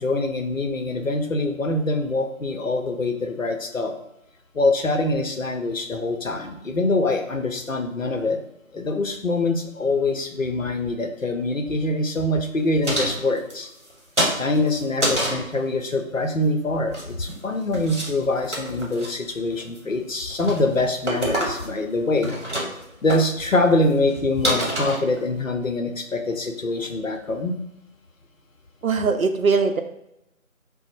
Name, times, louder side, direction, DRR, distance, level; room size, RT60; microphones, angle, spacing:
voice 1, 0.0-3.9 4.5-8.4 8.7-13.7 14.4-22.3 23.0-27.5, left 2 dB, 70° left, 5 dB, 0.6 m, -24 dB
sound 1, 12.8-13.9 14.2-15.5 16.7-17.4 17.7-18.1 18.4-19.1 19.6-19.9 20.3-20.6 21.0-21.9 22.1-22.8 23.1-23.2 23.8-23.9 24.1-24.2 24.4-25.4, right 1 dB, 55° right, 1.0 m, -26 dB
voice 2, 28.8-29.8, right 4 dB, 75° right, 7 dB, 0.6 m, -20 dB
3.8 x 2.0 x 4.3 m, 0.84 s
figure-of-eight pair, 175°, 42 cm